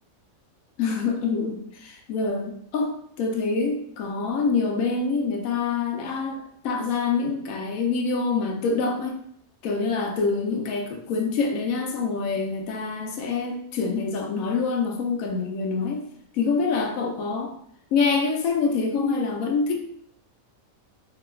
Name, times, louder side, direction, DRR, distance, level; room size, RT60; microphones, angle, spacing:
voice 1, 0.8-9.2 9.6-16.0 16.3-17.5 17.9-19.8, left 4 dB, 75° left, 2 dB, 1.0 m, -26 dB
4.3 x 2.9 x 2.2 m, 0.67 s
omnidirectional pair, 1.5 m